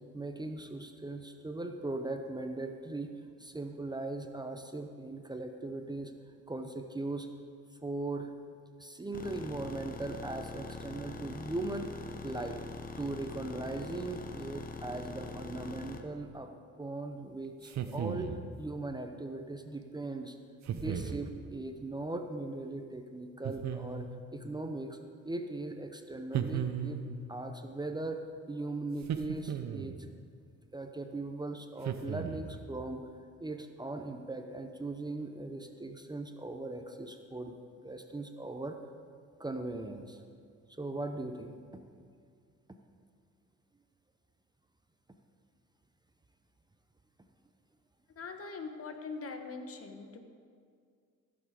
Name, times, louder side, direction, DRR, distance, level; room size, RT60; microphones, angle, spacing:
voice 1, 0.1-3.1 3.4-6.1 6.5-7.3 7.8-8.4 8.8-11.9 12.2-16.5 16.8-18.3 18.6-20.4 20.7-24.1 24.3-25.0 25.2-27.0 27.3-28.2 28.5-30.0 30.7-33.0 33.4-37.5 37.8-38.8 39.4-40.2 40.7-41.6, right 2 dB, 15° right, 5 dB, 0.7 m, -39 dB
sound 1, 9.1-16.0, left 3 dB, 30° left, 1.0 m, -43 dB
sound 2, 17.6-18.5 20.7-21.3 23.4-24.2 26.3-27.2 29.0-30.0 31.8-32.6, right 8 dB, 65° right, 0.8 m, -36 dB
voice 2, 48.2-50.2, left 4 dB, 50° left, 6 dB, 1.2 m, -42 dB
15.0 x 7.1 x 5.0 m, 2.2 s
cardioid pair, 90°, 30 cm